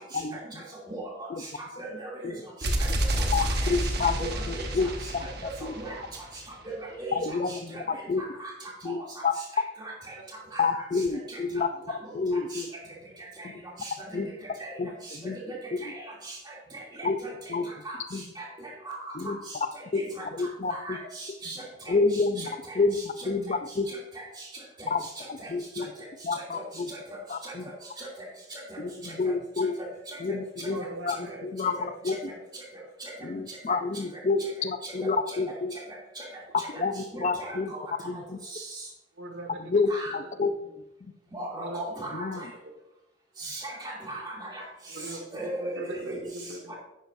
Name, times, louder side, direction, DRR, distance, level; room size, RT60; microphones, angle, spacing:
voice 1, 0.1-0.6 1.3-1.4 2.2-2.3 2.6-2.7 3.3-4.9 5.1-5.3 5.6-5.7 7.1-8.2 8.8-9.0 9.2-9.3 10.6-11.7 12.1-12.7 14.1-14.3 14.8-15.4 15.7-15.9 17.0-17.2 17.5-17.7 18.1-18.2 19.1-19.4 19.9-20.0 20.3-21.0 21.9-22.5 22.7-23.9 24.8-25.0 25.3-25.9 26.2-26.9 27.3-27.7 28.8-29.8 30.2-32.2 33.2-35.7 36.7-37.7 38.0-38.4 39.6-40.5 42.1-42.4, left 4 dB, 40° left, 9 dB, 0.4 m, -29 dB
voice 2, 0.9-1.3 1.8-2.2 2.8-2.9 3.2-3.3 3.6-3.7 4.2-4.6 5.4-6.0 7.0-7.2 7.7-7.8 8.9-9.0 10.5-10.6 12.5-12.6 13.8-13.9 14.6-14.7 15.2-15.6 15.8-15.9 16.3-16.4 17.2-17.3 17.8-18.0 18.4-18.5 18.9-19.1 20.2-20.3 20.7-21.0 21.4-21.6 25.4-25.5 25.8-25.9 26.5-26.6 27.4-27.5 28.0-28.1 28.7-28.8 29.0-29.1 31.8-31.9 35.3-35.4 37.1-37.6 39.9-40.1 41.3-42.3 43.4-44.6 45.3-46.2 46.7-46.8, right 2 dB, 20° right, -4 dB, 2.6 m, -37 dB
sound 1, 2.6-6.5, right 1 dB, 55° right, 1.0 m, -29 dB
voice 3, 30.7-31.8 39.1-39.7 40.2-40.7 41.5-41.9 44.9-46.7, right 1 dB, 80° right, 3 dB, 1.7 m, -40 dB
10.0 x 9.1 x 2.6 m, 0.90 s
head